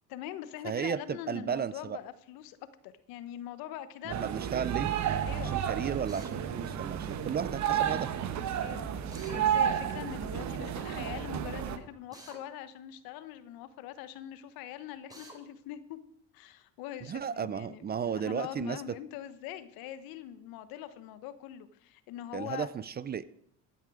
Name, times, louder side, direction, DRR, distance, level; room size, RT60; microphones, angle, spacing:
voice 1, 0.1-2.6 2.8-4.2 5.2-5.6 8.6-16.0 16.3-22.7, left 11 dB, 75° left, 13 dB, 1.2 m, -43 dB
voice 2, 0.6-2.0 4.0-4.9 5.4-8.1 17.1-19.0 22.3-23.2, right 7 dB, 25° right, 17 dB, 0.5 m, -34 dB
sound 1, 4.1-11.8, right 9 dB, 50° right, 1.2 m, -32 dB
Drill, 6.1-6.3 9.1-9.4 12.1-12.4 15.1-15.4, right 1 dB, 10° right, 3.3 m, -49 dB
15.0 x 9.6 x 4.9 m, 0.70 s
supercardioid pair, 95°, 36 cm